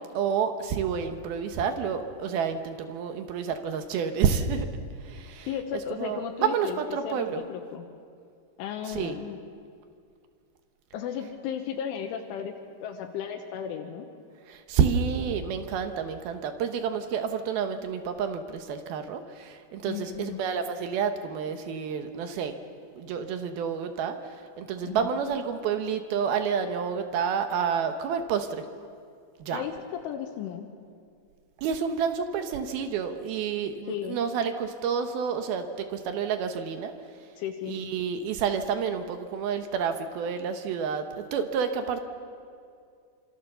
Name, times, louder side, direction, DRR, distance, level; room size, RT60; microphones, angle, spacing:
voice 1, 0.0-4.7 5.0-5.5 6.0-7.4 8.9-9.2 14.5-22.5 23.0-24.2 24.6-28.5 29.4-29.6 31.6-36.9 37.7-42.0, right 7 dB, 70° right, 7 dB, 2.5 m, -29 dB
voice 2, 5.5-7.9 8.6-9.4 10.9-14.1 19.9-20.4 24.8-25.1 29.5-30.7 33.9-34.2 37.4-37.8, left 8 dB, 80° left, 4 dB, 3.6 m, -35 dB
26.5 x 26.0 x 6.9 m, 2.3 s
omnidirectional pair, 5.6 m